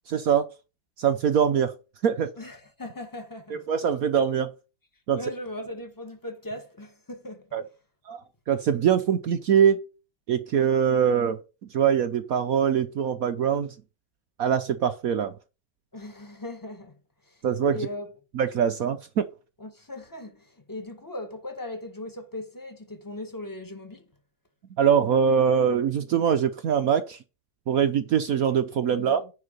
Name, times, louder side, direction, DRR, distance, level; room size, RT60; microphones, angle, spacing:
voice 1, 0.1-0.5 1.0-1.7 2.0-2.3 3.5-4.5 5.1-5.2 7.5-7.6 8.1-9.8 10.3-11.4 11.7-13.7 14.4-15.3 17.4-17.8 18.3-19.3 24.8-27.2 27.7-29.2, right 8 dB, 70° right, 0.8 m, -23 dB
voice 2, 2.3-3.7 5.1-7.5 15.9-16.9 17.2-17.4 17.7-18.1 19.6-24.1 28.9-29.3, left 1 dB, 10° left, 1.4 m, -38 dB
9.9 x 4.7 x 6.7 m
omnidirectional pair, 2.3 m